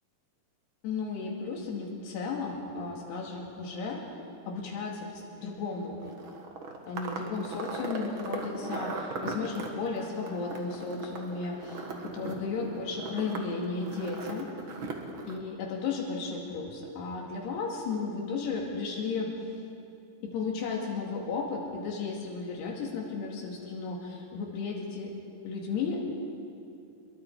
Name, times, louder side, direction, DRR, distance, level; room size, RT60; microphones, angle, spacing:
voice 1, 0.8-4.1 4.5-6.0 6.9-14.5 15.3-19.3 20.2-26.0, left 4 dB, 90° left, -1 dB, 4.4 m, -34 dB
sound 1, 6.0-15.4, right 3 dB, 45° right, 1.7 m, -39 dB
28.0 x 22.5 x 4.7 m, 2.6 s
omnidirectional pair, 4.6 m